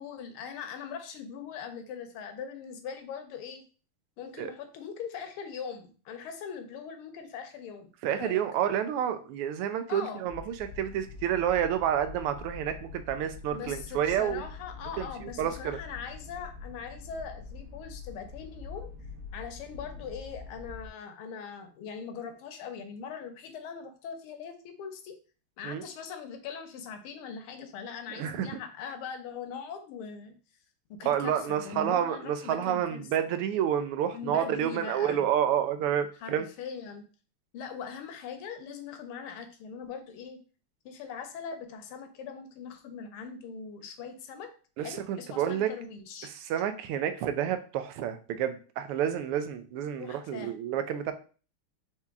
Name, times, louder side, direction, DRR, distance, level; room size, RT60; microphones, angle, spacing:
voice 1, 0.0-3.6 4.2-8.4 9.9-10.3 13.5-18.9 19.3-25.2 25.6-30.3 30.9-33.3 34.1-35.3 36.2-37.0 37.5-40.4 40.8-44.5 44.8-46.3 50.0-50.5, left 6 dB, 80° left, 7 dB, 1.6 m, -41 dB
voice 2, 8.0-14.4 15.0-15.8 25.6-25.8 28.1-28.5 31.0-36.5 44.8-45.7 46.3-51.1, right 9 dB, 85° right, 10 dB, 1.5 m, -29 dB
sound 1, 10.2-20.9, left 4 dB, 70° right, 1.9 m, -45 dB
4.6 x 2.8 x 3.4 m, 0.37 s
omnidirectional pair, 2.4 m